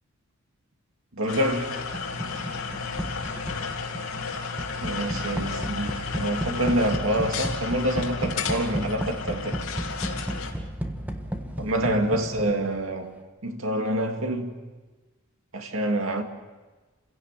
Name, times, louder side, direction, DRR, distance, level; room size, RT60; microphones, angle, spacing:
voice 1, 1.1-1.7 4.8-9.7 11.6-13.1 13.4-14.6 15.5-16.2, right 1 dB, 65° right, 2.5 m, -27 dB
sound 1, 1.3-10.5, left 5 dB, 80° left, 2.7 m, -33 dB
sound 2, 1.9-12.8, equal, 10° right, 1.4 m, -34 dB
28.0 x 17.0 x 7.5 m
head